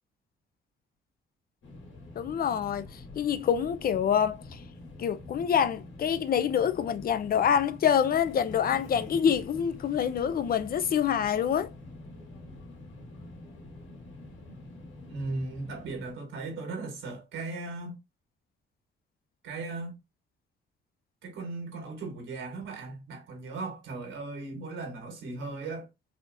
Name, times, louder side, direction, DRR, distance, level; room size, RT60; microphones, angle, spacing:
sound 1, 1.6-16.1, left 2 dB, 75° left, 2.1 m, -46 dB
voice 1, 2.2-2.8 3.2-4.6 5.0-11.7, left 8 dB, 50° left, 0.5 m, -26 dB
voice 2, 15.1-18.0 19.4-20.0 21.2-25.9, right 3 dB, 75° right, 1.6 m, -37 dB
4.2 x 2.8 x 2.6 m
cardioid pair, 90°, 20 cm